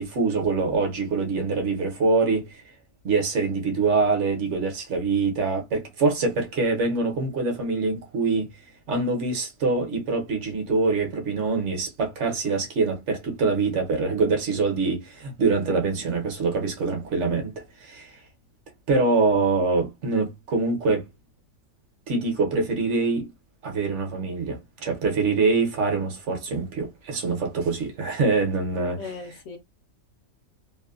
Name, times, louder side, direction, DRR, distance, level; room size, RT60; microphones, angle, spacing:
voice 1, 0.0-2.6 3.0-8.5 8.9-17.5 17.8-18.2 18.9-21.1 22.1-23.3 23.6-29.0, right 3 dB, 60° right, 1.1 m, -24 dB
voice 2, 29.0-29.6, left 4 dB, 70° left, 0.9 m, -37 dB
2.9 x 2.2 x 2.4 m
omnidirectional pair, 1.4 m